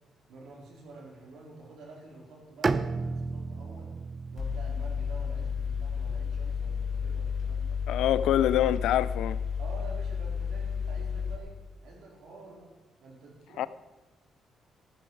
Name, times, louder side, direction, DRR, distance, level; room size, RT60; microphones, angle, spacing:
voice 1, 0.3-3.9 4.3-7.7 9.6-12.7 13.0-13.7, right 3 dB, 75° right, 4.1 m, -48 dB
Bowed string instrument, 2.6-6.6, right 4 dB, 35° right, 0.6 m, -34 dB
Mechanical fan, 4.4-11.4, left 6 dB, 50° left, 3.6 m, -32 dB
voice 2, 7.9-9.4 13.6-13.7, left 12 dB, 85° left, 0.5 m, -25 dB
14.0 x 13.5 x 4.7 m
cardioid pair, 90°, 0 cm